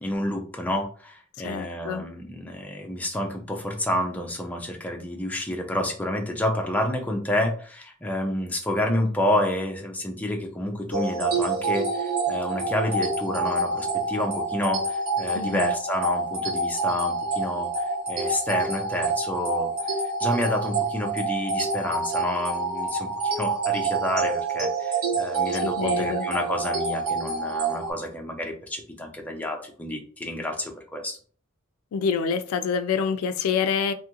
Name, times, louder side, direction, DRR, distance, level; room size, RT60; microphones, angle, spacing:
voice 1, 0.0-19.9 20.2-31.2, left 1 dB, 5° left, 1 dB, 0.4 m, -29 dB
voice 2, 1.4-2.0 15.3-15.7 25.6-26.3 31.9-33.9, left 6 dB, 90° left, 10 dB, 0.3 m, -26 dB
sound 1, 10.9-27.9, right 3 dB, 75° right, 0.9 m, -27 dB
2.7 x 2.4 x 2.9 m, 0.43 s
head